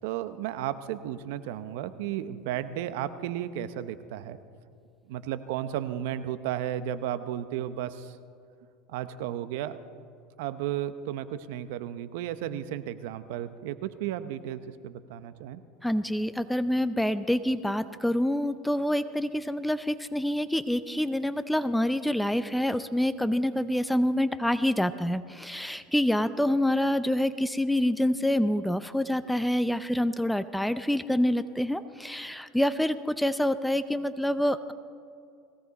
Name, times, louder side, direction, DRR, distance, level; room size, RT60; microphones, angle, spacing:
voice 1, 0.0-4.4 5.1-8.2 8.9-9.8 10.4-15.6, right 11 dB, 75° right, 13 dB, 0.8 m, -34 dB
voice 2, 15.8-34.7, left 1 dB, 5° left, 13 dB, 0.5 m, -27 dB
20.5 x 16.5 x 4.1 m, 2.4 s
supercardioid pair, 120°, 0 cm